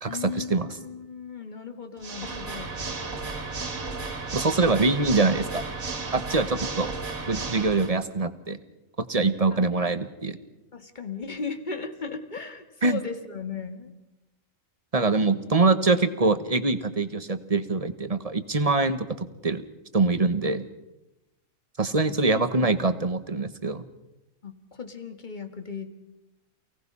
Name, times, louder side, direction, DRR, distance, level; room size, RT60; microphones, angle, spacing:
voice 1, 0.1-2.8 9.5-9.9 10.7-13.9 22.1-22.8 24.4-25.9, left 5 dB, 35° left, 7 dB, 2.0 m, -37 dB
Water / Mechanisms, 2.0-8.0, right 3 dB, 85° right, 2.7 m, -33 dB
voice 2, 4.3-5.6 6.1-6.9 7.3-8.6 9.1-10.4 12.8-13.0 14.9-19.6 19.9-20.6 21.8-23.8, right 3 dB, 30° right, 11 dB, 1.2 m, -24 dB
29.0 x 18.0 x 5.6 m, 0.96 s
omnidirectional pair, 1.4 m